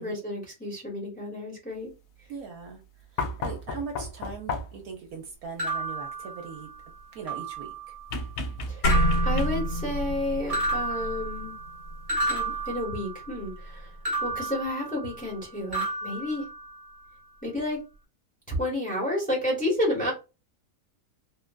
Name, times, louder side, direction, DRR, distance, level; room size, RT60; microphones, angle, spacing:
voice 1, 0.0-1.9 8.7-8.9 9.2-11.5 12.3-13.9 14.2-16.4 17.4-17.8 18.5-20.1, left 1 dB, 5° left, -3 dB, 1.1 m, -31 dB
voice 2, 2.3-2.8 3.1-6.7 7.1-7.7, right 5 dB, 70° right, 3 dB, 1.1 m, -40 dB
sound 1, 3.2-4.9 8.1-9.9 11.4-11.5, left 2 dB, 75° left, 1.2 m, -33 dB
sound 2, 5.6-6.9 7.3-8.0 8.9-10.2 10.5-13.4 14.0-15.4 15.7-17.1, right 3 dB, 25° right, 1.1 m, -33 dB
sound 3, 8.8-13.5, equal, 60° left, 2.0 m, -28 dB
3.7 x 2.3 x 2.2 m, 0.28 s
omnidirectional pair, 1.7 m